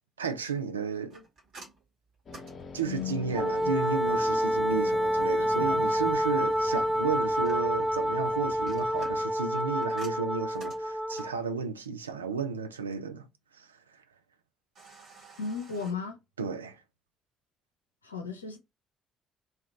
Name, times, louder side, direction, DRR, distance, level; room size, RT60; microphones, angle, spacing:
voice 1, 0.2-1.2 2.7-13.3 13.6-13.7 16.4-16.8, right 5 dB, 80° right, 0.3 m, -33 dB
sound 1, 1.1-3.4 6.7-7.9 8.5-11.4 14.7-15.9, right 3 dB, 55° right, 1.7 m, -52 dB
sound 2, 2.3-9.3, left 4 dB, 45° left, 0.7 m, -46 dB
voice 2, 2.9-3.9 4.4-4.5 5.5-6.0 15.4-16.2 18.0-18.6, left 5 dB, 85° left, 0.6 m, -37 dB
Wind instrument woodwind instrument, 3.3-11.3, equal, ahead, 0.4 m, -28 dB
2.9 x 2.8 x 2.9 m
figure-of-eight pair, 45°, 0 cm